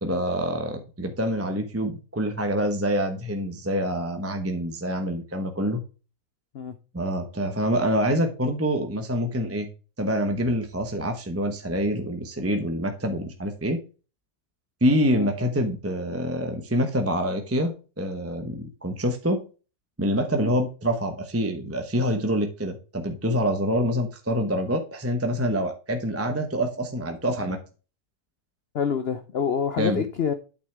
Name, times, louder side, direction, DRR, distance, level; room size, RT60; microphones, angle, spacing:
voice 1, 0.0-5.8 6.9-9.7 10.0-13.8 14.8-19.4 20.0-27.6 29.8-30.0, equal, 10° right, 0.7 m, -26 dB
voice 2, 28.7-30.3, left 7 dB, 60° left, 0.6 m, -27 dB
9.0 x 6.7 x 3.4 m
omnidirectional pair, 1.9 m